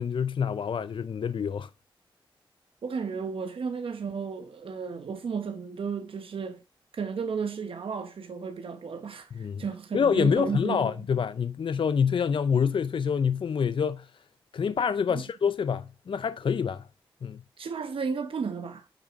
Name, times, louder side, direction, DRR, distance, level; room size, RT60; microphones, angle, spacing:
voice 1, 0.0-1.7 9.3-9.6 9.9-14.1 14.5-16.9 17.2-17.4, left 6 dB, 70° left, 0.4 m, -26 dB
voice 2, 2.8-6.6 6.9-10.9 15.1-15.2 17.6-18.9, right 5 dB, 80° right, 0.9 m, -33 dB
8.4 x 6.1 x 3.6 m
cardioid pair, 60°, 9 cm